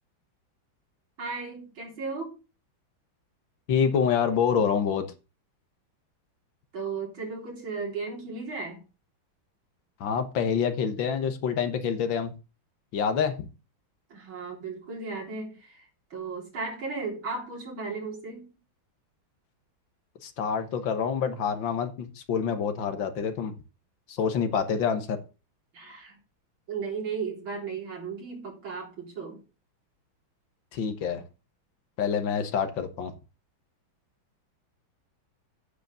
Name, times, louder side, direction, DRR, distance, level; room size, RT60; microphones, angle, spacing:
voice 1, 1.2-2.4 6.7-8.8 14.1-18.5 25.7-26.2 26.7-29.4, right 4 dB, 75° right, -2 dB, 4.3 m, -35 dB
voice 2, 3.7-5.1 10.0-12.3 12.9-13.5 20.2-23.5 24.1-25.2 30.7-31.2 32.0-33.1, left 7 dB, 70° left, 9 dB, 1.8 m, -27 dB
9.2 x 5.1 x 6.9 m, 0.32 s
omnidirectional pair, 2.2 m